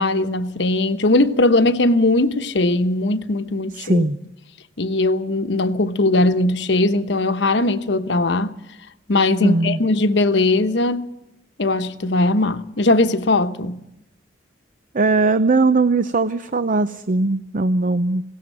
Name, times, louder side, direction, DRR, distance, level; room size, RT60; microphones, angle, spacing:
voice 1, 0.0-4.0 4.8-8.5 9.1-11.1 11.6-13.8, left 2 dB, 70° left, 1.1 m, -19 dB
voice 2, 3.7-4.2 9.4-9.8 14.9-18.2, right 3 dB, 45° right, 0.7 m, -19 dB
20.0 x 17.5 x 7.7 m
head